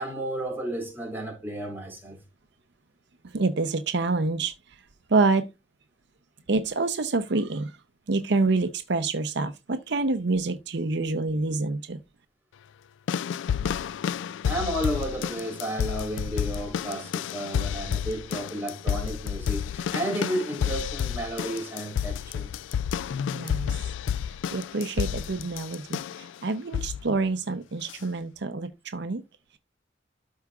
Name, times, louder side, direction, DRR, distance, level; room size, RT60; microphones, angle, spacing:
voice 1, 0.0-2.2 14.5-22.5, right 1 dB, 10° right, 3.7 m, -32 dB
voice 2, 3.3-4.5 5.1-5.5 6.5-7.7 8.1-12.0 23.3-23.7 24.5-29.2, right 3 dB, 65° right, 0.7 m, -27 dB
sound 1, 13.1-26.3 26.7-27.1 27.9-28.0, left 8 dB, 90° left, 0.3 m, -30 dB
13.0 x 4.8 x 2.3 m
head